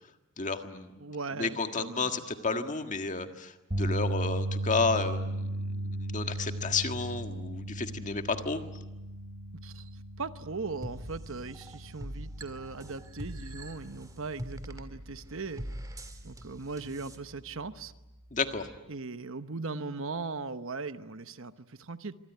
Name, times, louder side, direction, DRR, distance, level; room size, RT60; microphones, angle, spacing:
voice 1, 0.4-0.9 1.3-8.6 18.3-18.7, left 4 dB, 35° left, 7 dB, 1.7 m, -32 dB
voice 2, 1.0-2.2 9.6-15.7 16.2-17.9 18.9-22.1, right 4 dB, 65° right, 11 dB, 1.0 m, -39 dB
sound 1, 3.7-16.0 16.3-16.6 18.7-18.8, right 1 dB, 40° right, 3.0 m, -37 dB
sound 2, 10.8-17.2, equal, 15° right, 1.9 m, -43 dB
26.0 x 24.5 x 9.3 m, 1.0 s
head